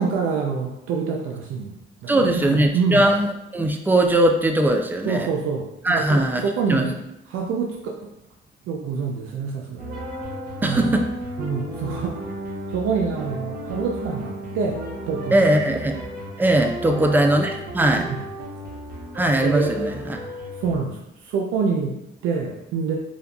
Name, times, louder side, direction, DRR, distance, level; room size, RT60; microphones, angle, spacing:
voice 1, 0.0-3.1 5.0-6.9 7.3-8.1 8.6-9.8 10.6-10.9 11.4-12.1 12.7-15.6 16.9-17.2 18.0-18.3 19.4-19.9 20.6-22.9, right 5 dB, 85° right, 0 dB, 0.5 m, -26 dB
voice 2, 2.1-3.3 3.5-5.3 5.8-6.4 6.7-6.9 10.6-11.1 15.3-15.9 16.4-18.1 19.1-20.2, right 1 dB, 10° right, 4 dB, 0.4 m, -20 dB
sound 1, 9.8-20.8, equal, 50° right, 1.0 m, -34 dB
5.2 x 2.3 x 2.3 m, 0.84 s
cardioid pair, 90°, 20 cm